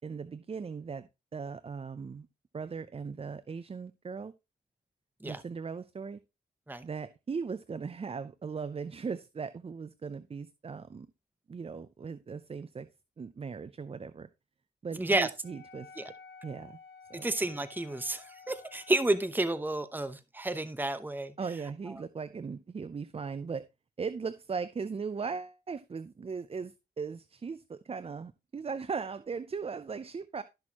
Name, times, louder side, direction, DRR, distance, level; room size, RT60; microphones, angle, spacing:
voice 1, 0.0-2.3 2.5-4.3 5.2-6.2 6.8-11.1 11.5-12.9 13.2-14.3 14.8-16.1 16.4-16.8 17.1-17.3 21.4-23.6 24.0-30.4, right 5 dB, 35° right, 0.5 m, -38 dB
voice 2, 15.0-15.3 16.0-16.1 17.1-21.3, right 2 dB, 10° right, 0.9 m, -31 dB
Wind instrument woodwind instrument, 15.4-19.3, left 5 dB, 80° left, 1.5 m, -53 dB
12.5 x 6.1 x 2.9 m
cardioid pair, 65°, 18 cm